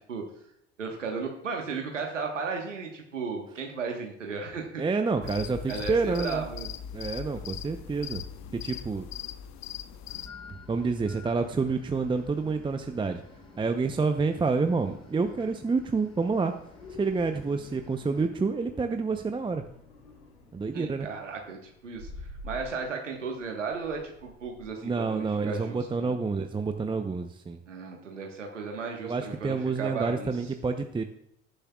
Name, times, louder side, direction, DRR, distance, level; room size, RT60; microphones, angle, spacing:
voice 1, 0.8-4.8 5.2-5.3 5.7-6.7 20.7-26.1 27.7-30.5, right 4 dB, 85° right, 2 dB, 1.4 m, -35 dB
voice 2, 4.8-6.4 6.9-8.2 8.5-9.1 10.7-13.2 13.6-16.5 17.0-19.6 20.5-21.1 24.8-27.6 29.0-31.0, right 4 dB, 15° right, 7 dB, 0.7 m, -28 dB
sound 1, 5.2-10.3, left 9 dB, 50° left, 1.0 m, -40 dB
sound 2, 10.1-18.3, left 5 dB, 15° left, 4.0 m, -51 dB
sound 3, 12.1-24.7, left 2 dB, 75° left, 3.7 m, -49 dB
18.0 x 10.0 x 2.4 m, 0.76 s
figure-of-eight pair, 70°, 36 cm